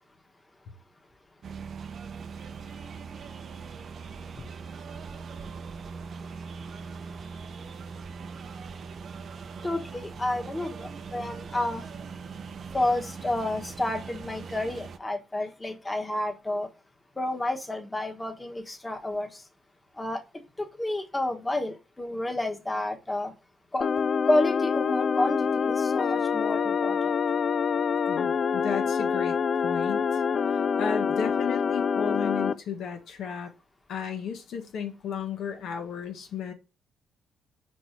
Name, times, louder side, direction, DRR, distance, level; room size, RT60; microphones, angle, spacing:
sound 1, 1.4-15.0, right 5 dB, 55° right, 0.6 m, -41 dB
voice 1, 9.6-11.8 12.7-16.7 17.2-19.3 20.0-20.2 20.8-23.3 23.7-23.8 24.3-27.0, left 1 dB, 15° left, 1.4 m, -30 dB
sound 2, 23.8-32.5, left 6 dB, 45° left, 0.4 m, -26 dB
voice 2, 28.1-29.4 29.6-30.2 30.5-33.5 33.9-36.5, left 7 dB, 75° left, 1.2 m, -34 dB
4.6 x 4.4 x 4.6 m
cardioid pair, 90°, 0 cm